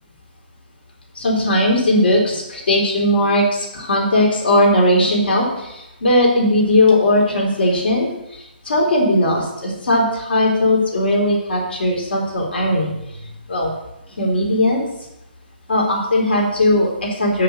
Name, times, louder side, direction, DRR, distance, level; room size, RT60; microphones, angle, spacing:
voice 1, 1.2-12.9 13.5-13.7 14.2-14.8 15.7-17.4, left 1 dB, 75° left, -1 dB, 3.7 m, -18 dB
6.6 x 6.6 x 6.7 m, 0.88 s
hypercardioid pair, 170°, 6 cm